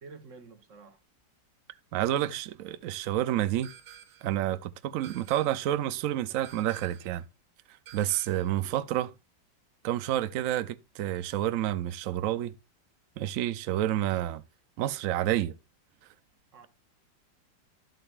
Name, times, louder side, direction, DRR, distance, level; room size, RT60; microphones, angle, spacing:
voice 1, 0.0-1.0 2.1-2.4 8.6-8.9 16.5-16.7, right 4 dB, 45° right, 1.3 m, -50 dB
voice 2, 1.9-3.7 4.2-7.2 7.7-9.1 9.8-12.5 13.2-14.4 14.8-15.6, right 12 dB, 80° right, 0.7 m, -29 dB
sound 1, 3.6-4.4 5.0-5.8 6.4-7.2 7.9-8.6, right 10 dB, 65° right, 1.5 m, -51 dB
12.0 x 7.8 x 2.3 m
omnidirectional pair, 2.0 m